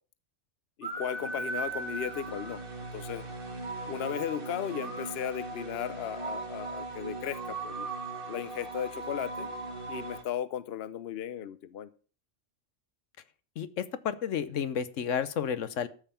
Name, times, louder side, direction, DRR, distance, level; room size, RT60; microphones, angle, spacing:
voice 1, 0.8-2.6 2.9-3.3 3.9-7.9 8.3-9.5 9.9-11.9, left 9 dB, 60° left, 16 dB, 0.9 m, -36 dB
sound 1, 0.8-10.2, right 3 dB, 45° right, 1.7 m, -38 dB
voice 2, 13.6-15.9, left 8 dB, 80° left, 14 dB, 1.2 m, -31 dB
13.0 x 5.6 x 6.9 m, 0.38 s
omnidirectional pair, 1.3 m